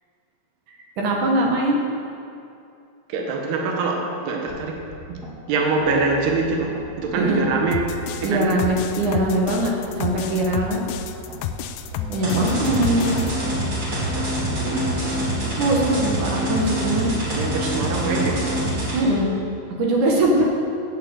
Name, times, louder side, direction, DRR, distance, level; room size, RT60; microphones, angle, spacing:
voice 1, 1.0-1.8 7.2-7.4 8.2-9.7 10.0-10.8 12.1-13.2 15.6-17.1 18.9-19.3 19.8-20.4, right 1 dB, 60° right, -2 dB, 2.5 m, -21 dB
voice 2, 3.1-4.8 5.1-5.2 5.5-7.9 8.2-8.7 14.5-14.9 17.3-18.6 19.1-19.4, right 3 dB, 75° right, 1 dB, 3.2 m, -24 dB
sound 1, 4.5-16.6, left 2 dB, ahead, 1.3 m, -40 dB
sound 2, 7.7-13.3, left 9 dB, 85° left, 2.1 m, -31 dB
sound 3, 12.2-19.0, right 1 dB, 30° right, 3.7 m, -25 dB
8.9 x 8.8 x 8.0 m, 2.5 s
omnidirectional pair, 4.7 m